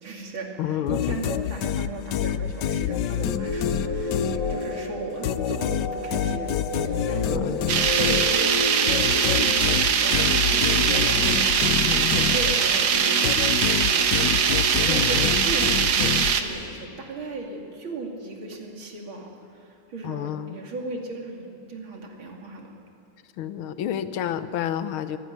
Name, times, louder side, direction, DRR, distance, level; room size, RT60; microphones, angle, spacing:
voice 1, 0.0-0.5 0.9-7.6 8.0-8.7 9.4-11.8 12.1-22.7, right 2 dB, 75° right, 1 dB, 3.3 m, -36 dB
voice 2, 0.6-1.3 7.2-7.7 11.9-12.2 14.9-15.4 20.0-20.6 23.4-25.2, left 10 dB, 80° left, 11 dB, 1.7 m, -30 dB
sound 1, 0.9-4.9 5.2-12.9 13.2-16.7, left 10 dB, 65° left, 1.1 m, -28 dB
sound 2, 3.2-16.9, left 2 dB, 50° left, 4.5 m, -33 dB
sound 3, 7.7-16.4, right 7 dB, 90° right, 2.0 m, -22 dB
23.0 x 16.5 x 9.4 m, 2.7 s
omnidirectional pair, 2.3 m